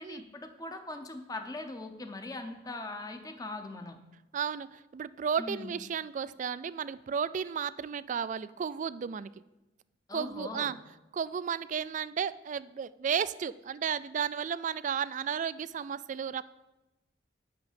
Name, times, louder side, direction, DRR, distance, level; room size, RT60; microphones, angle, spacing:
voice 1, 0.0-4.0 5.4-5.7 10.1-10.8, left 2 dB, 20° left, 6 dB, 0.8 m, -41 dB
voice 2, 4.3-9.3 10.1-10.8 11.1-16.4, right 7 dB, 45° right, 17 dB, 0.3 m, -33 dB
8.6 x 6.1 x 7.4 m, 1.0 s
head